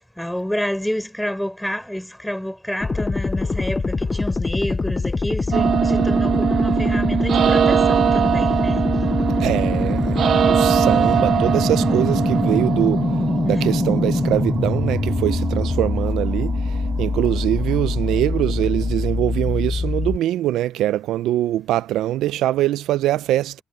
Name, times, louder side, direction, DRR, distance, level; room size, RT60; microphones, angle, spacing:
voice 1, 0.2-8.9 13.5-13.6, equal, 5° left, 4.3 m, -28 dB
sound 1, 2.8-20.2, left 3 dB, 25° left, 0.4 m, -23 dB
sound 2, 5.5-19.4, right 8 dB, 65° right, 0.8 m, -22 dB
voice 2, 9.4-10.2 10.5-13.0 13.4-16.6 17.0-23.5, right 14 dB, 85° right, 0.4 m, -22 dB
cardioid pair, 90°, 0 cm